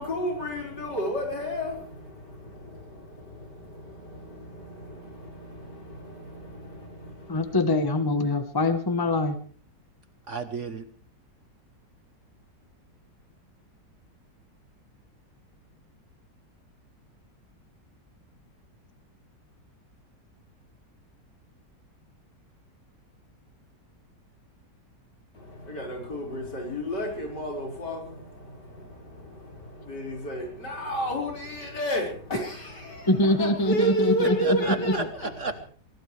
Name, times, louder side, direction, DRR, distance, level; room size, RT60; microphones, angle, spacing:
voice 1, 0.0-7.5 25.3-35.3, equal, 70° left, 0 dB, 5.8 m, -32 dB
voice 2, 7.3-9.4 33.1-35.1, left 2 dB, 15° left, 9 dB, 1.0 m, -24 dB
voice 3, 10.3-10.8 34.4-35.6, right 4 dB, 50° right, 9 dB, 1.3 m, -32 dB
23.5 x 18.0 x 3.3 m, 0.43 s
omnidirectional pair, 1.9 m